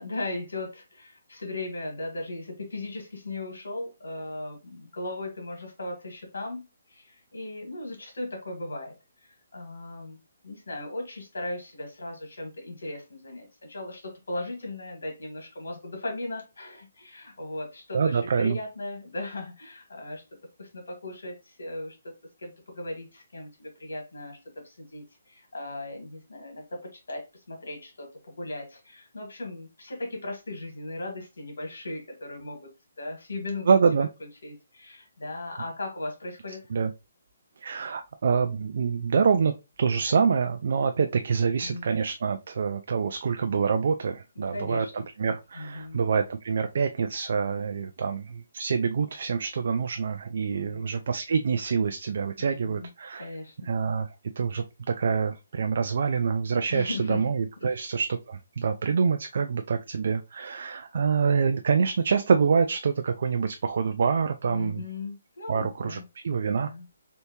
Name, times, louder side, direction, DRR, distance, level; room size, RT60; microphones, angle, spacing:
voice 1, 0.0-8.9 9.2-20.2 20.6-22.1 22.4-28.1 28.4-33.7 34.0-36.6 41.6-41.9 44.4-45.0 45.5-46.0 50.5-50.8 52.4-52.9 53.2-53.7 56.7-57.2 57.6-57.8 64.5-66.0 66.5-66.9, left 2 dB, 80° left, 1.7 m, -37 dB
voice 2, 17.9-18.6 33.7-34.1 36.7-36.9 37.6-53.3 53.6-54.1 54.4-54.6 55.0-64.8 65.5-66.7, right 5 dB, 60° right, 0.3 m, -26 dB
3.3 x 2.7 x 2.9 m
hypercardioid pair, 160°, 0 cm